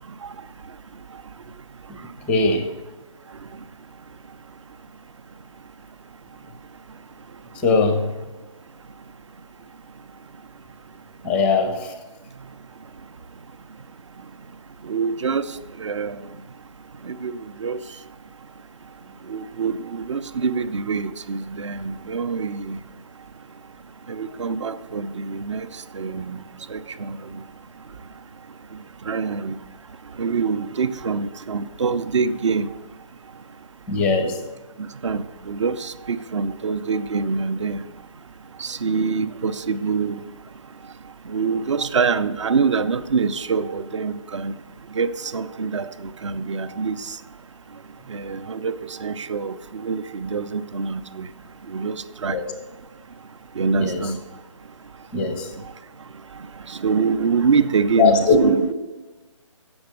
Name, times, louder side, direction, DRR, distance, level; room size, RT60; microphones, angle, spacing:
voice 1, 2.3-2.7 7.6-8.1 11.2-11.9 33.9-34.4 52.3-52.5 53.8-54.1 55.1-55.5 58.0-58.5, left 3 dB, 5° left, 6 dB, 0.5 m, -20 dB
voice 2, 14.9-15.4 15.8-16.1 17.1-17.3 17.6-17.8 19.3-22.8 24.1-25.7 25.9-26.4 26.7-26.8 29.1-29.5 30.2-32.7 35.0-37.8 38.6-40.2 41.3-44.5 45.0-45.1 45.3-45.9 46.2-47.0 48.1-49.5 49.8-51.3 51.7-51.9 52.2-52.4 53.6-54.2 56.8-58.7, right 5 dB, 65° right, 13 dB, 0.6 m, -24 dB
7.9 x 6.1 x 6.5 m, 1.3 s
figure-of-eight pair, 155°, 17 cm